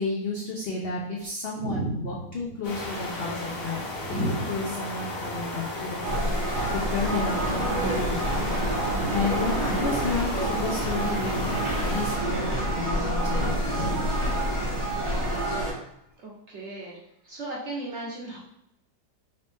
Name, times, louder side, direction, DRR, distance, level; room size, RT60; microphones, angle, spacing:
voice 1, 0.0-3.8 4.1-6.6 6.9-13.9, left 3 dB, 75° left, -3 dB, 0.5 m, -32 dB
voice 2, 1.5-2.4 4.0-4.5 6.5-6.7 8.9-9.2 11.3-11.7 13.7-14.2 16.2-18.4, right 2 dB, 55° right, -3 dB, 0.8 m, -34 dB
sound 1, 2.6-12.2, left 2 dB, 55° left, 1.3 m, -34 dB
sound 2, 6.0-15.7, right 1 dB, 35° right, 0.5 m, -28 dB
sound 3, 7.3-15.5, right 2 dB, 85° right, 1.3 m, -35 dB
5.4 x 2.8 x 3.5 m, 0.79 s
omnidirectional pair, 1.9 m